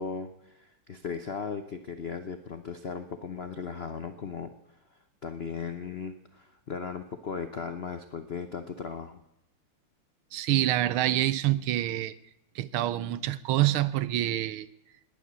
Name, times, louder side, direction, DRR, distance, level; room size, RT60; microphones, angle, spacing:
voice 1, 0.0-4.5 4.9-9.2, left 5 dB, 85° left, 0.5 m, -37 dB
voice 2, 10.3-12.1 12.5-14.7, right 14 dB, 75° right, 1.5 m, -26 dB
19.5 x 8.8 x 8.2 m
omnidirectional pair, 2.4 m